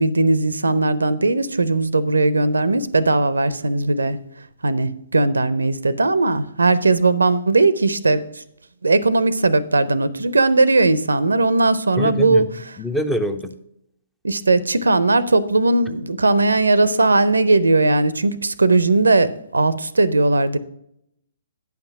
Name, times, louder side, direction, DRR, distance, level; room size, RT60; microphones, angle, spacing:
voice 1, 0.0-4.2 4.6-8.2 8.8-12.5 14.2-20.6, right 3 dB, 80° right, 18 dB, 0.5 m, -18 dB
voice 2, 12.0-12.5 12.8-13.5, equal, 5° left, 9 dB, 0.6 m, -24 dB
8.8 x 5.9 x 5.9 m, 0.77 s
figure-of-eight pair, 125°, 0 cm